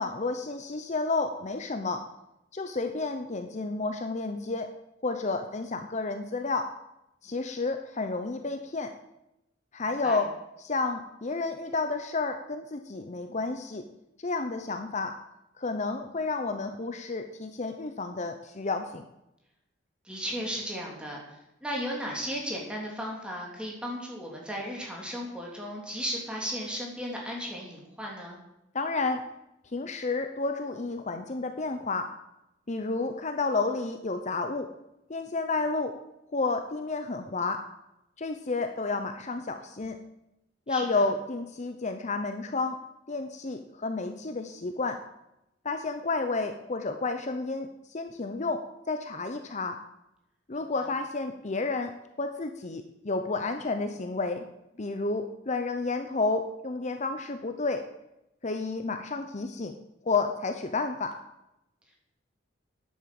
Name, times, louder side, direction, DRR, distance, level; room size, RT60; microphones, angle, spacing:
voice 1, 0.0-2.1 2.5-4.7 5.0-6.7 7.2-8.9 9.7-10.3 10.6-13.8 14.2-15.2 15.6-19.1 28.7-29.2 29.7-32.1 32.7-34.7 35.1-36.0 36.3-37.6 38.2-40.0 40.7-42.8 43.1-45.0 45.6-49.8 50.5-51.9 52.2-54.4 54.8-57.9 58.4-59.7 60.0-61.1, left 3 dB, 40° left, 6 dB, 0.8 m, -31 dB
voice 2, 20.0-28.4 40.7-41.1, equal, 5° right, -2 dB, 3.3 m, -35 dB
10.5 x 8.6 x 7.8 m, 0.88 s
head